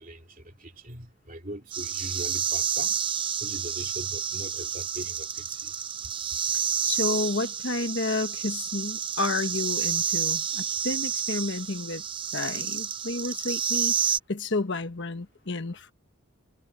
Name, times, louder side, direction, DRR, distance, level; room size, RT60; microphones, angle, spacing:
voice 1, 0.0-3.0 3.4-5.7 6.3-6.4, right 1 dB, 40° right, 2.9 m, -41 dB
sound 1, 1.7-14.2, right 8 dB, 25° right, 0.6 m, -29 dB
voice 2, 6.8-12.0 12.3-13.9 14.3-15.9, left 3 dB, 55° left, 1.3 m, -30 dB
head